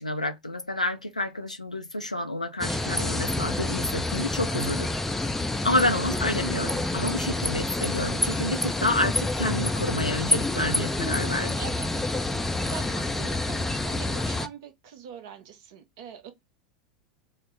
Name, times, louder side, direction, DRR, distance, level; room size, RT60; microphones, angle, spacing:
voice 1, 0.0-4.9 5.6-11.6, left 1 dB, 85° left, 0.5 m, -29 dB
sound 1, 2.6-14.5, left 2 dB, 5° left, 0.4 m, -28 dB
voice 2, 11.6-12.1 12.6-16.3, right 7 dB, 50° right, 0.8 m, -43 dB
3.2 x 2.0 x 3.6 m
figure-of-eight pair, 85°, 4 cm